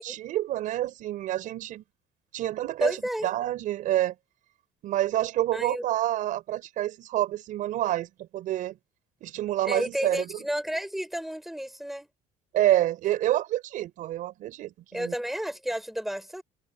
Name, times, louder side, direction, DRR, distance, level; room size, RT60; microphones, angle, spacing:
voice 1, 0.0-1.8 2.3-3.0 3.2-4.1 4.8-8.7 9.2-10.2 12.5-15.1, right 13 dB, 55° right, 5.3 m, -28 dB
voice 2, 2.8-3.3 5.5-5.8 9.6-12.1 14.9-16.4, equal, ahead, 7.9 m, -31 dB
cardioid pair, 175°, 16 cm